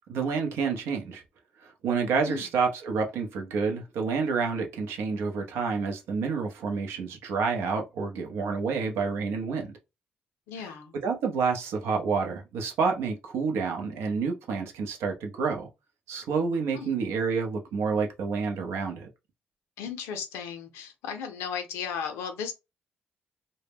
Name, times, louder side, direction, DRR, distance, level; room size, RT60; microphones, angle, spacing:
voice 1, 0.1-1.2 1.6-9.7 10.6-10.7 11.0-15.7 16.1-19.1, right 5 dB, 80° right, 0.6 m, -29 dB
voice 2, 10.5-11.0 16.7-16.9 19.8-22.5, left 7 dB, 85° left, 0.5 m, -35 dB
2.1 x 2.1 x 3.3 m
hypercardioid pair, 50°, 4 cm